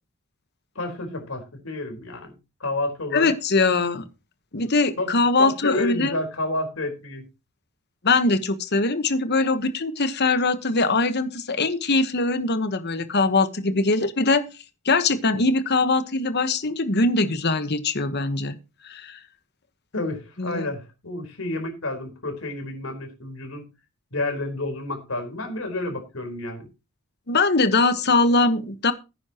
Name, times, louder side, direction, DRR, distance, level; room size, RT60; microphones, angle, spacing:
voice 1, 0.7-2.3 2.6-3.3 5.0-5.1 5.4-7.2 19.9-23.7 24.1-26.7, left 2 dB, 80° left, 4.3 m, -30 dB
voice 2, 3.1-4.0 4.5-6.1 8.0-14.4 14.8-18.5 18.8-19.2 20.4-20.7 27.3-28.9, left 3 dB, 50° left, 1.2 m, -22 dB
17.0 x 9.8 x 3.0 m
head